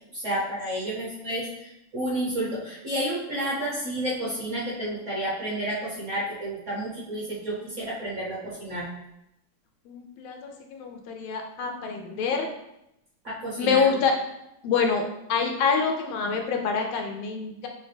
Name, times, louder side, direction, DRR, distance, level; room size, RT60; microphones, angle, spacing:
voice 1, 0.0-8.8 13.2-14.0, right 1 dB, 50° right, -6 dB, 1.0 m, -31 dB
voice 2, 9.9-12.5 13.6-14.1 14.6-15.0 15.3-17.7, left 5 dB, 90° left, 3 dB, 1.5 m, -26 dB
5.7 x 2.1 x 3.3 m, 0.85 s
omnidirectional pair, 2.2 m